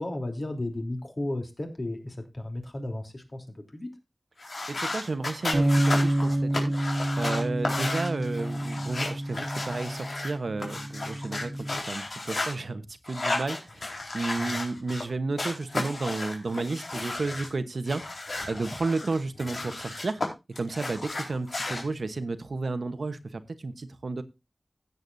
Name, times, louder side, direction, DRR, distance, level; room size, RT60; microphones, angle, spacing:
voice 1, 0.0-3.4 3.7-3.9 14.4-14.6, left 1 dB, 50° left, 4 dB, 3.3 m, -34 dB
sound 1, 4.4-12.5 13.0-15.0 15.4-17.5 17.9-20.3 20.5-21.8, left 2 dB, 75° left, 4.1 m, -33 dB
voice 2, 4.7-6.7 7.1-18.0 18.5-20.2 20.6-24.2, right 3 dB, 85° right, 11 dB, 1.1 m, -32 dB
sound 2, 5.5-11.8, right 1 dB, 40° right, 1.5 m, -28 dB
16.0 x 8.1 x 2.7 m, 0.25 s
wide cardioid pair, 70°, 0 cm